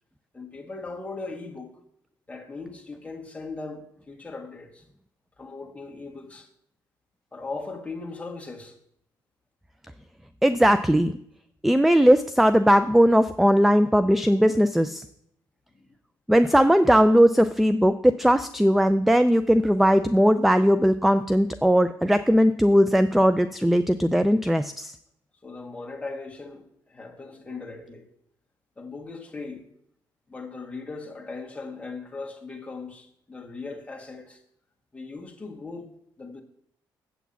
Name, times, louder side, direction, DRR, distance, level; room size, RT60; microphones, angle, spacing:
voice 1, 0.3-1.8 2.3-4.9 5.4-6.5 7.3-8.8 15.7-15.9 25.4-28.1 28.8-29.7 30.3-34.4 34.9-35.9 36.2-36.4, left 3 dB, 15° left, 1.8 m, -38 dB
voice 2, 10.4-11.2 11.6-15.0 16.3-24.9, equal, ahead, 0.4 m, -19 dB
8.2 x 6.0 x 7.2 m
cardioid pair, 90°, 8 cm